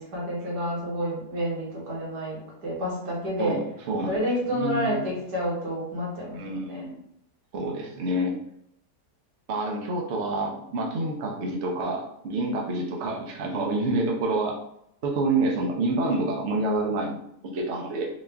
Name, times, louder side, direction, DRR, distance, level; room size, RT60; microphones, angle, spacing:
voice 1, 0.0-3.6 4.1-6.9 16.7-16.8, equal, 80° right, -5 dB, 2.0 m, -29 dB
voice 2, 3.4-4.1 4.4-5.0 6.3-7.0 7.5-8.4 9.5-14.6 15.0-18.1, right 2 dB, 55° right, 0 dB, 0.8 m, -28 dB
4.0 x 2.4 x 3.4 m, 0.76 s
omnidirectional pair, 1.8 m